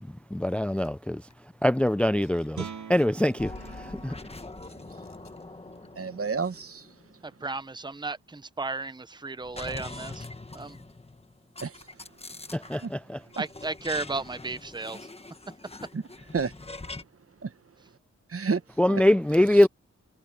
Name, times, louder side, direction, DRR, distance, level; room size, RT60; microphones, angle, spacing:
voice 1, 0.0-1.3 1.6-4.2 12.5-13.2 18.8-19.7, left 1 dB, 5° left, 0.4 m, -24 dB
sound 1, 0.8-0.9 1.3-1.6 1.8-2.5 2.8-5.4, left 5 dB, 75° left, 7.3 m, -64 dB
Guitar, 2.5-8.1, right 7 dB, 85° right, 1.0 m, -46 dB
sound 2, 3.4-7.4 9.4-12.9 13.3-17.0, left 2 dB, 20° left, 1.3 m, -43 dB
voice 2, 6.0-6.9 11.6-11.8 12.8-12.9 15.9-16.0 16.3-16.5 17.4-17.5 18.3-18.6 18.9-19.0, right 5 dB, 50° right, 1.2 m, -30 dB
voice 3, 7.2-10.3 10.5-10.8 13.4-15.1, right 3 dB, 15° right, 0.8 m, -34 dB
wide cardioid pair, 90°, 29 cm